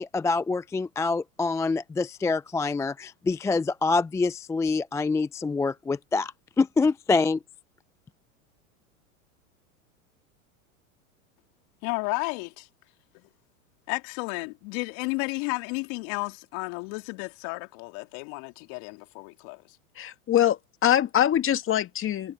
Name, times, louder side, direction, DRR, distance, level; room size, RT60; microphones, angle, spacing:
voice 1, 0.0-7.4, left 4 dB, 5° left, 0.4 m, -26 dB
voice 2, 11.8-12.7 13.1-13.2 13.9-19.6, left 30 dB, 50° left, 2.3 m, -32 dB
voice 3, 20.0-22.3, left 11 dB, 30° left, 2.1 m, -23 dB
hypercardioid pair, 100°, 42 cm